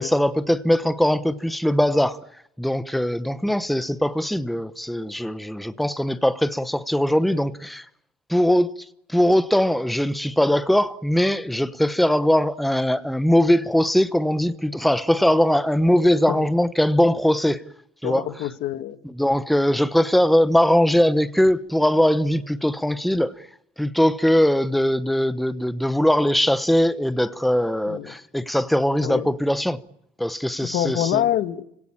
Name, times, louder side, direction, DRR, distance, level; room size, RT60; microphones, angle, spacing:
voice 1, 0.0-2.2 2.6-7.8 8.3-8.7 9.1-17.6 18.0-18.2 19.2-23.3 23.8-29.8 30.2-31.2, equal, ahead, 1.0 m, -20 dB
voice 2, 15.9-16.5 18.0-19.0 27.9-28.1 29.0-29.3 30.6-31.6, left 12 dB, 80° left, 1.5 m, -26 dB
30.0 x 17.5 x 8.7 m
cardioid pair, 110°, 17 cm